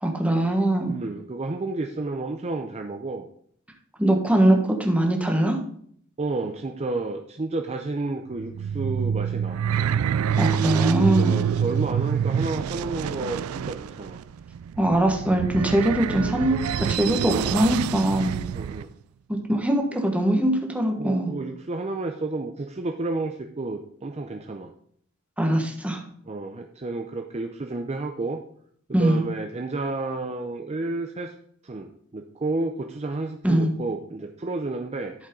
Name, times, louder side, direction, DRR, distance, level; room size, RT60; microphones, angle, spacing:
voice 1, 0.0-0.9 4.0-5.6 10.4-11.3 14.8-18.4 19.3-21.3 25.4-26.0 28.9-29.2 33.4-33.7, right 1 dB, 5° right, 2 dB, 1.4 m, -22 dB
voice 2, 0.9-3.3 6.2-9.6 11.2-14.2 18.5-18.9 21.0-24.7 26.3-28.4 29.0-31.3 31.6-35.1, right 2 dB, 30° right, 4 dB, 0.6 m, -31 dB
sound 1, 8.3-18.8, right 8 dB, 85° right, 0.3 m, -27 dB
12.0 x 5.3 x 3.9 m, 0.62 s
head